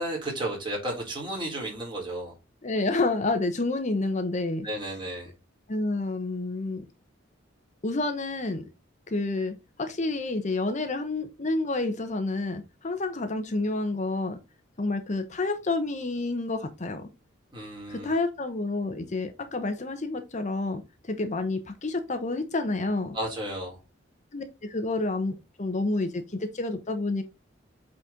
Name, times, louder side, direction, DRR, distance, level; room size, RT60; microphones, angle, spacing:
voice 1, 0.0-2.3 4.6-5.3 17.5-18.2 23.1-23.8, right 1 dB, 25° right, 3.7 m, -33 dB
voice 2, 2.6-4.7 5.7-6.8 7.8-8.6 9.1-14.4 14.8-17.1 17.9-23.2 24.3-27.2, left 2 dB, 40° left, 0.9 m, -29 dB
8.0 x 4.2 x 3.7 m
head